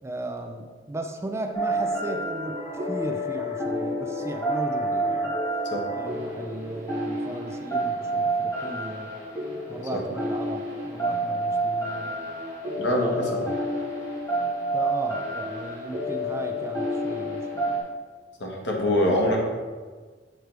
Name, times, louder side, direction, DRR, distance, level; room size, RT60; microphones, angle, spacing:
voice 1, 0.0-5.4 5.9-9.1 9.7-12.1 12.9-13.5 14.7-17.8, right 2 dB, 15° right, 4 dB, 0.4 m, -36 dB
sound 1, 1.5-17.8, right 1 dB, 20° left, 1.6 m, -29 dB
voice 2, 12.8-13.4 18.4-19.4, left 1 dB, 80° left, -1 dB, 1.2 m, -24 dB
6.6 x 4.5 x 3.3 m, 1.5 s
head